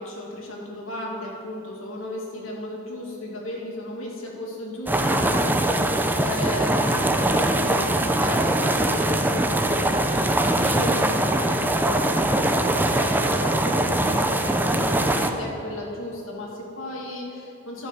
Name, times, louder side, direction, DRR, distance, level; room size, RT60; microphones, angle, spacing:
voice 1, 0.0-17.9, left 1 dB, 80° left, -2 dB, 2.2 m, -34 dB
sound 1, 4.9-15.3, right 1 dB, 10° right, 0.5 m, -22 dB
11.5 x 5.6 x 7.5 m, 2.8 s
head